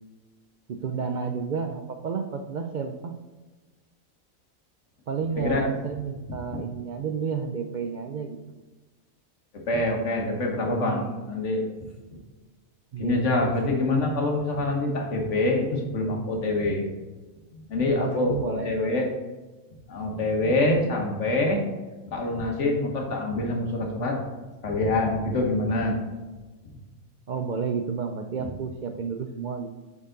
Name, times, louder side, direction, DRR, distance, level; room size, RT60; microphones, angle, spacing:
voice 1, 0.7-3.1 5.1-8.4 10.7-11.2 12.9-13.7 14.0-14.2 18.0-19.1 27.3-29.7, right 5 dB, 85° right, 5 dB, 0.4 m, -31 dB
voice 2, 5.4-5.7 6.3-6.6 9.7-11.6 13.0-16.8 17.7-19.1 19.9-21.6 22.1-24.2 24.6-26.0, left 2 dB, 60° left, 1 dB, 1.6 m, -25 dB
6.8 x 5.6 x 3.9 m, 1.2 s
omnidirectional pair, 1.4 m